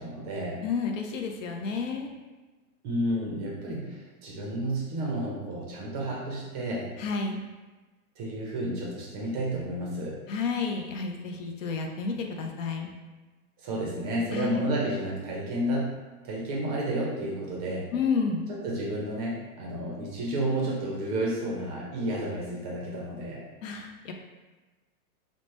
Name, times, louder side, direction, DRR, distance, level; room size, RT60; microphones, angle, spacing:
voice 1, 0.0-0.6 2.8-6.9 8.2-10.2 13.6-16.0 16.2-17.9 18.5-23.5, right 1 dB, 30° right, -3 dB, 0.5 m, -31 dB
voice 2, 0.6-2.1 7.0-7.4 10.3-12.9 14.3-14.6 17.9-18.5 23.6-24.1, left 5 dB, 60° left, 2 dB, 0.5 m, -30 dB
3.2 x 2.1 x 3.0 m, 1.2 s
hypercardioid pair, 140°, 44 cm